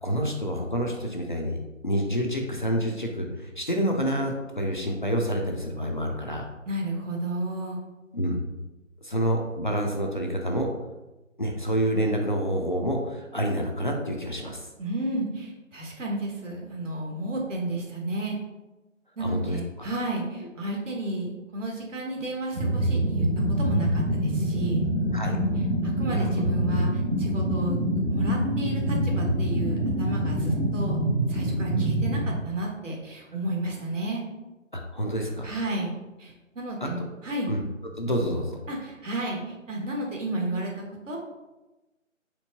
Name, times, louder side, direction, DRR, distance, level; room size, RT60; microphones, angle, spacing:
voice 1, 0.0-6.5 8.1-8.4 9.0-10.7 11.4-14.7 19.2-19.9 25.1-25.4 26.1-26.4 34.7-35.5 36.8-37.1 37.5-37.6 38.0-38.6, equal, 40° left, 1 dB, 0.4 m, -28 dB
voice 2, 6.7-7.8 14.8-18.4 19.2-24.8 25.8-27.8 28.1-31.0 31.3-34.2 35.4-35.9 36.2-37.5 38.7-41.2, right 1 dB, 65° right, 0 dB, 1.3 m, -32 dB
sound 1, 22.5-32.3, right 1 dB, 45° right, 1.1 m, -25 dB
4.4 x 4.2 x 2.8 m, 1.1 s
figure-of-eight pair, 160°, 39 cm